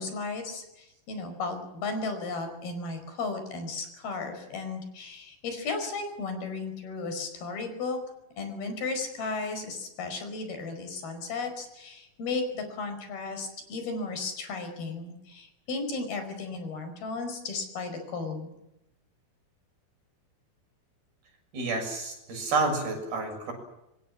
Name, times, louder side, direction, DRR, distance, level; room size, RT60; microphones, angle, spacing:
voice 1, 0.0-8.0 8.4-18.5, left 3 dB, 80° left, 7 dB, 7.0 m, -35 dB
voice 2, 21.5-23.5, right 3 dB, 80° right, 4 dB, 8.7 m, -29 dB
26.0 x 23.5 x 7.6 m, 0.89 s
omnidirectional pair, 4.3 m